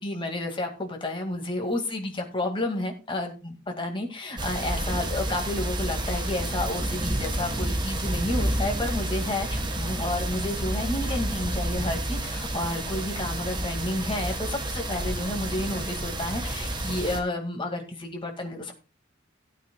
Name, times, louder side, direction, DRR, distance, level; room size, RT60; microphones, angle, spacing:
voice 1, 0.0-18.7, left 1 dB, 25° left, 2 dB, 2.1 m, -31 dB
sound 1, 4.4-17.2, right 1 dB, 25° right, 1.3 m, -30 dB
sound 2, 4.5-16.0, equal, 10° left, 3.0 m, -46 dB
17.0 x 9.0 x 2.3 m, 0.31 s
head